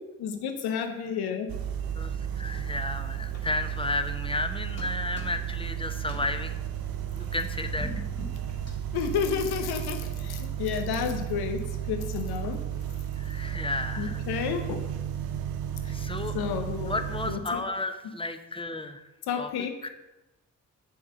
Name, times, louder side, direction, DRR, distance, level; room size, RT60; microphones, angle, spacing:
voice 1, 0.2-1.5 8.9-11.6 11.9-12.6 14.0-14.8 16.3-17.0 17.3-17.6 19.3-19.7, left 7 dB, 75° left, 7 dB, 0.9 m, -31 dB
sound 1, 1.5-17.4, right 10 dB, 65° right, 0.8 m, -33 dB
voice 2, 1.9-6.7 7.1-8.0 13.1-14.2 15.8-16.3 16.8-19.1 19.4-19.5 19.8-19.9, left 2 dB, 15° left, 8 dB, 0.8 m, -33 dB
sound 2, 3.3-4.5 4.8-5.7 6.0-9.8, left 1 dB, 40° left, 2.0 m, -44 dB
6.9 x 3.7 x 6.1 m, 0.99 s
hypercardioid pair, 45°, 38 cm